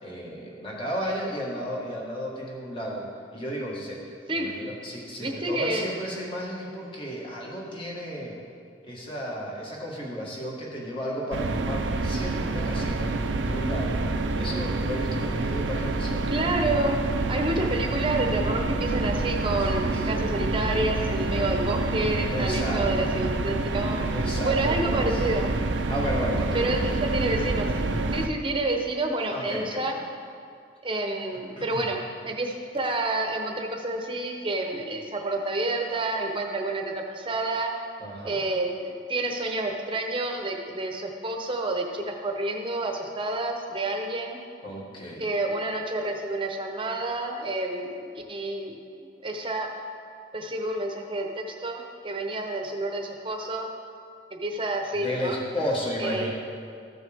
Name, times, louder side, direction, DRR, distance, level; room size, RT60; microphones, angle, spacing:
voice 1, 0.0-3.0 3.3-4.0 4.3-8.3 8.8-13.1 13.4-14.0 14.3-16.3 19.6-20.3 22.3-22.8 24.0-25.2 25.9-27.1 29.3-29.8 31.6-31.9 38.0-38.4 44.6-45.2 55.0-56.3, equal, 30° left, -4 dB, 1.8 m, -33 dB
voice 2, 5.2-5.8 16.3-17.0 17.3-24.1 24.4-25.5 26.5-27.7 28.1-29.9 30.8-37.7 38.2-44.4 45.2-48.0 48.3-48.8 49.2-49.7 50.3-53.7 54.3-55.4 56.0-56.3, right 2 dB, 30° right, 2 dB, 0.9 m, -29 dB
sound 1, 11.3-28.3, right 2 dB, 85° right, 0.6 m, -27 dB
14.0 x 6.2 x 3.5 m, 2.4 s
head